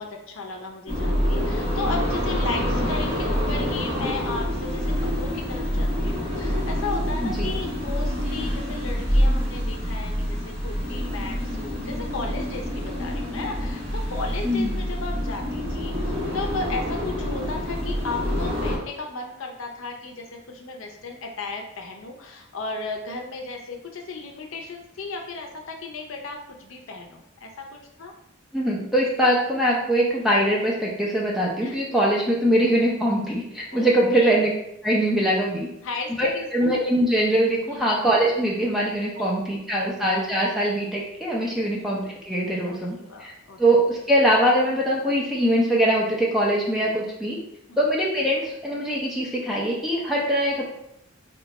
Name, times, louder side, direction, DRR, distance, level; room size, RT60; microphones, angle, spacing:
voice 1, 0.0-28.1 31.6-31.8 33.7-34.5 35.8-36.5 37.7-37.9 39.2-39.3 39.8-39.9 41.6-41.7 42.6-43.6 47.7-47.8, left 3 dB, 75° left, 2 dB, 0.6 m, -35 dB
sound 1, 0.9-18.8, equal, 30° right, 0.9 m, -26 dB
voice 2, 14.4-14.8 28.5-34.5 34.8-35.7 36.2-47.4 47.8-50.7, right 1 dB, ahead, -4 dB, 0.5 m, -22 dB
2.8 x 2.3 x 4.0 m, 0.80 s
head